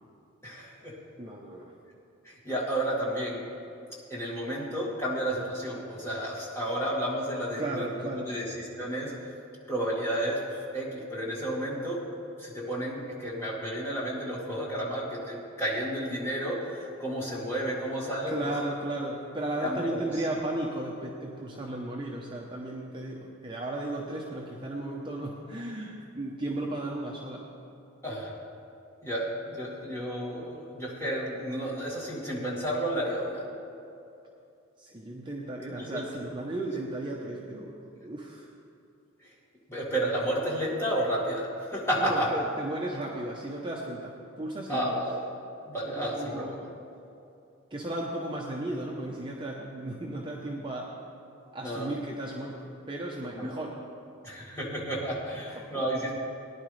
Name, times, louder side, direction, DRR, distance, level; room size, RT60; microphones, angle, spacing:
voice 1, 0.4-0.9 2.2-3.4 4.1-9.1 9.7-12.0 12.4-18.5 19.6-20.0 28.0-28.3 29.0-33.4 35.8-36.0 39.7-42.3 44.7-45.2 45.7-46.6 51.6-51.9 53.4-53.6 54.2-56.1, right 1 dB, 10° left, -5 dB, 2.1 m, -31 dB
voice 2, 1.2-1.8 7.6-8.3 18.3-27.4 34.8-37.7 38.0-38.5 42.0-45.0 45.9-46.6 47.7-50.9 51.5-52.6 52.9-53.7 55.3-55.9, right 1 dB, 20° right, -3 dB, 0.8 m, -35 dB
19.0 x 10.5 x 3.3 m, 2.6 s
head